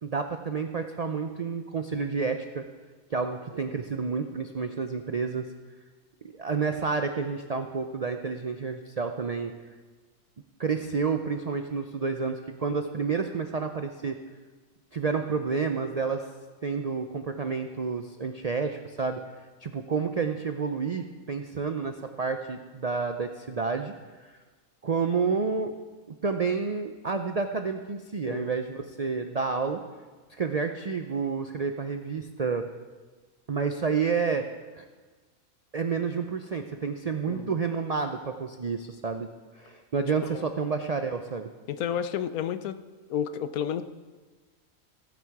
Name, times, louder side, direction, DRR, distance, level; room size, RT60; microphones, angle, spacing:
voice 1, 0.0-2.6 3.1-5.5 6.2-9.5 10.6-14.2 14.9-16.3 16.6-19.2 19.6-23.9 24.2-24.3 24.8-25.7 26.2-29.8 30.3-32.6 33.5-34.5 34.8-34.9 35.7-39.3 39.6-41.5, right 5 dB, 80° right, 6 dB, 0.3 m, -29 dB
voice 2, 37.3-37.6 40.3-40.4 41.7-42.8 43.1-43.8, left 9 dB, 80° left, 12 dB, 1.1 m, -31 dB
15.5 x 9.4 x 4.7 m, 1.4 s
omnidirectional pair, 1.5 m